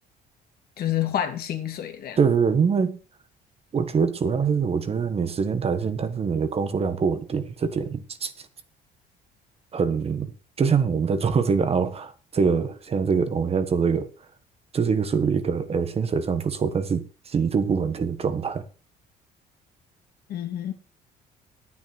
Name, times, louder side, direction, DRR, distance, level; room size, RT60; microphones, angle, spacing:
voice 1, 0.8-2.2 20.3-20.7, left 11 dB, 65° left, 2.4 m, -28 dB
voice 2, 2.2-3.0 3.7-8.3 9.7-10.3 10.6-14.1 14.7-18.6, right 6 dB, 35° right, 1.3 m, -24 dB
9.7 x 8.6 x 6.4 m
cardioid pair, 110°, 17 cm